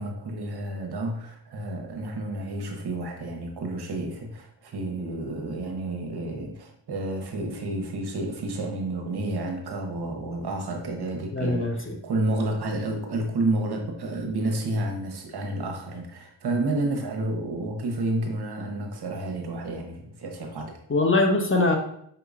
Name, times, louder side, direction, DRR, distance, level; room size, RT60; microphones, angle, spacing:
voice 1, 0.0-20.8, right 2 dB, 60° right, 2 dB, 1.0 m, -30 dB
voice 2, 11.3-12.0 20.9-21.8, left 2 dB, 30° left, 2 dB, 0.7 m, -22 dB
5.4 x 2.9 x 2.4 m, 0.68 s
supercardioid pair, 50°, 45 cm